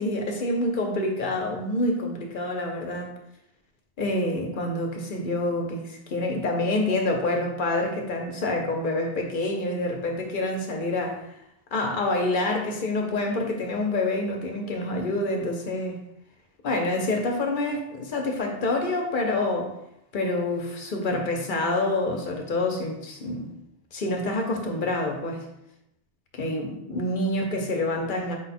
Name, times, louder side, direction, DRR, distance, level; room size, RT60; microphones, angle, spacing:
voice 1, 0.0-3.1 4.0-11.2 11.7-16.0 16.6-19.7 20.1-23.5 23.9-25.4 26.3-28.4, left 2 dB, 50° left, 2 dB, 0.8 m, -27 dB
5.0 x 2.2 x 4.1 m, 0.81 s
omnidirectional pair, 1.2 m